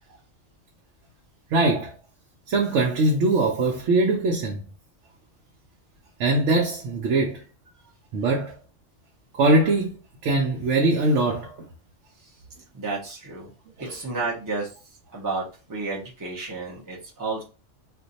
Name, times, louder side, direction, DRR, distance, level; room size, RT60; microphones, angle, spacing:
voice 1, 1.5-1.9 2.5-4.6 6.2-7.4 8.1-8.5 9.4-9.9 10.2-11.6 13.8-13.9, right 2 dB, 75° right, 0.9 m, -22 dB
voice 2, 12.7-13.5 13.8-14.7 15.1-17.4, right 3 dB, 25° right, 0.4 m, -31 dB
2.5 x 2.2 x 3.9 m
omnidirectional pair, 1.3 m